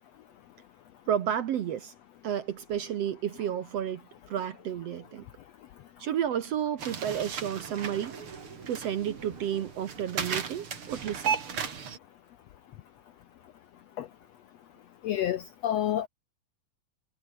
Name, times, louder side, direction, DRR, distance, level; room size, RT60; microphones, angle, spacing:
voice 1, 1.1-1.9 2.2-4.0 4.3-5.3 6.0-8.2 8.7-11.3, right 9 dB, 60° right, 1.8 m, -31 dB
sound 1, 6.8-12.0, right 6 dB, 40° right, 3.0 m, -35 dB
voice 2, 15.0-16.1, left 11 dB, 75° left, 1.6 m, -29 dB
omnidirectional pair, 3.9 m